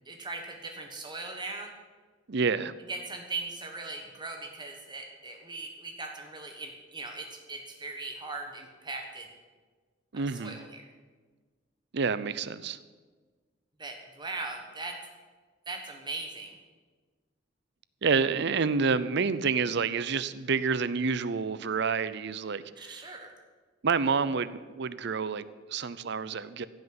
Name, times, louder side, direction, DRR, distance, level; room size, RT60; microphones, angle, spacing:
voice 1, 0.0-1.7 2.9-9.3 10.1-10.9 13.8-15.0 15.7-16.6 22.8-23.3, right 3 dB, 25° right, 3 dB, 1.4 m, -39 dB
voice 2, 2.3-2.7 10.1-10.6 11.9-12.8 18.0-23.0 23.8-26.7, right 5 dB, 65° right, 15 dB, 0.6 m, -28 dB
15.5 x 6.0 x 9.6 m, 1.4 s
head